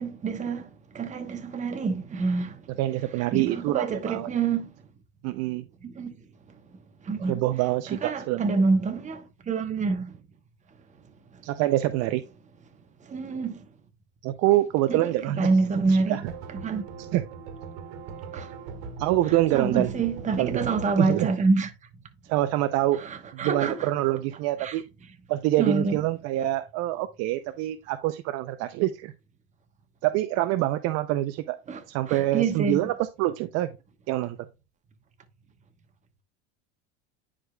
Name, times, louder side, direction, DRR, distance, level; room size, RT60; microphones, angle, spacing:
voice 1, 0.0-2.7 3.3-4.7 5.8-6.2 7.0-7.4 7.9-10.2 11.3-11.4 13.0-13.6 14.9-16.2 16.5-16.8 18.3-18.5 19.5-21.7 23.0-23.9 24.6-24.8 25.6-26.0 31.7-31.8 32.1-32.9, right 4 dB, 20° right, 1.0 m, -27 dB
voice 2, 2.8-4.3 5.2-5.6 7.3-8.5 11.4-12.2 14.2-15.4 15.9-16.2 17.1-17.2 19.0-19.9 20.4-20.7 21.0-21.3 22.3-23.0 23.3-24.8 25.3-29.1 30.0-31.6 31.9-33.7 34.1-34.4, right 15 dB, 50° right, 0.5 m, -25 dB
sound 1, 16.3-20.9, right 4 dB, 75° right, 1.6 m, -40 dB
9.7 x 4.9 x 2.2 m
supercardioid pair, 125°, 33 cm